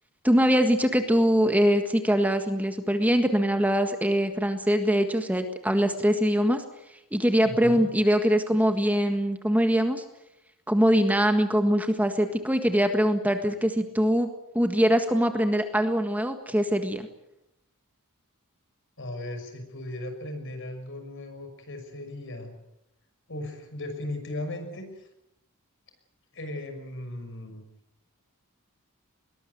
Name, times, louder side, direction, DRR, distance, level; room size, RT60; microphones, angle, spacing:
voice 1, 0.2-6.6 7.1-10.0 10.7-14.3 14.5-17.1, equal, 5° right, 6 dB, 1.6 m, -23 dB
voice 2, 7.4-7.9 19.0-22.6 23.3-25.1 26.3-27.6, left 1 dB, 60° left, 7 dB, 6.0 m, -37 dB
21.5 x 19.5 x 9.4 m, 0.85 s
head